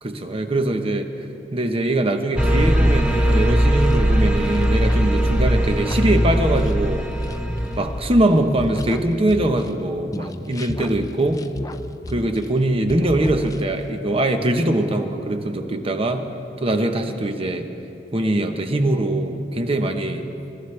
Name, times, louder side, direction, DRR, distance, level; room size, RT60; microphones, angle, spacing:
voice 1, 0.0-1.1 1.5-7.1 7.8-11.5 12.1-16.3 16.6-17.7 18.1-20.3, right 1 dB, 30° right, 6 dB, 1.0 m, -22 dB
sound 1, 2.4-8.1, equal, 5° right, 1.0 m, -19 dB
sound 2, 3.3-9.8 10.1-12.6 12.9-13.9, left 1 dB, 20° left, 0.5 m, -34 dB
27.5 x 14.5 x 3.4 m, 2.8 s
head